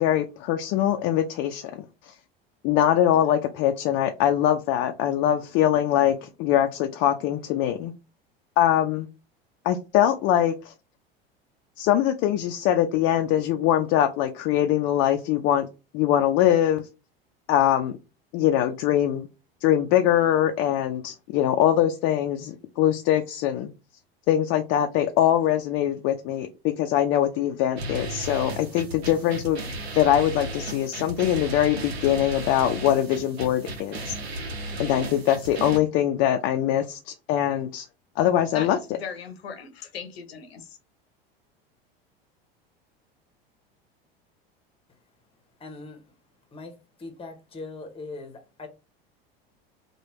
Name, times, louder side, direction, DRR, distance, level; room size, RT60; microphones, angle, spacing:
voice 1, 0.0-2.1 2.6-7.9 8.6-9.1 9.6-10.7 11.8-15.7 15.9-16.9 17.5-17.9 18.3-19.3 19.6-23.7 24.3-29.6 29.9-34.2 34.8-37.9 38.2-38.8, left 11 dB, 45° left, 0.4 m, -23 dB
sound 1, 27.8-35.8, right 1 dB, 85° right, 0.8 m, -34 dB
voice 2, 38.5-40.8, left 6 dB, 80° left, 0.7 m, -38 dB
voice 3, 45.6-46.2 46.5-48.7, left 3 dB, 20° left, 0.9 m, -41 dB
3.1 x 2.2 x 3.0 m
hypercardioid pair, 85°, 30 cm